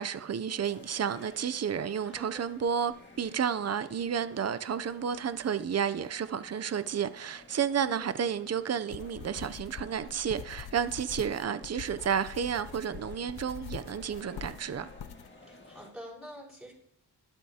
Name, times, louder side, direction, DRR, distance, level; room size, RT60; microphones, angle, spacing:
voice 1, 0.0-14.9, right 7 dB, 35° right, 0.6 m, -31 dB
sound 1, 0.6-15.9, left 2 dB, 25° left, 1.9 m, -54 dB
voice 2, 2.0-2.6 7.8-8.2 15.5-16.7, equal, ahead, 5.3 m, -47 dB
sound 2, 8.9-15.3, left 9 dB, 60° left, 0.6 m, -45 dB
21.5 x 8.0 x 2.9 m
cardioid pair, 80°, 43 cm